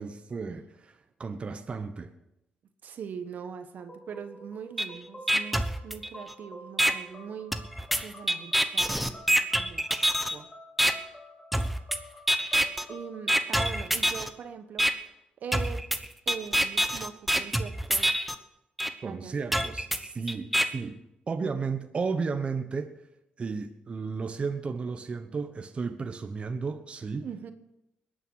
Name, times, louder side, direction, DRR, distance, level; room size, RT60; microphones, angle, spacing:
voice 1, 0.0-2.1 19.0-21.0 21.3-23.0 23.4-27.3, right 4 dB, 35° right, 7 dB, 1.1 m, -33 dB
voice 2, 2.8-7.5 8.0-9.8 10.3-10.5 12.9-14.9 15.4-15.8 16.3-18.2 19.0-19.3 27.2-27.5, right 7 dB, 65° right, 9 dB, 1.3 m, -41 dB
sound 1, 3.8-14.4, left 1 dB, 20° left, 3.6 m, -49 dB
sound 2, 4.8-4.9 5.3-6.3 6.8-6.9 7.5-10.3 10.8-10.9 11.5-12.0 12.3-12.8 13.3-14.3 14.8-14.9 15.5-18.3 18.8-18.9 19.5-20.6, equal, ahead, 1.0 m, -25 dB
21.5 x 9.1 x 6.4 m, 0.88 s
cardioid pair, 95°, 3 cm